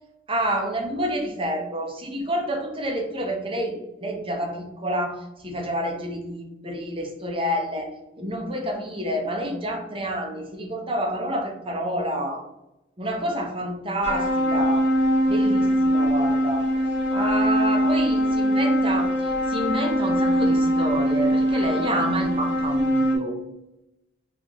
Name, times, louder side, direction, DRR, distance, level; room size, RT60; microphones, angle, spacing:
voice 1, 0.3-12.4 13.0-14.9 15.3-16.6 17.1-23.3, right 1 dB, 30° right, 2 dB, 0.7 m, -28 dB
sound 1, 14.0-23.2, equal, 65° left, 1.2 m, -22 dB
4.3 x 2.6 x 2.9 m, 0.89 s
head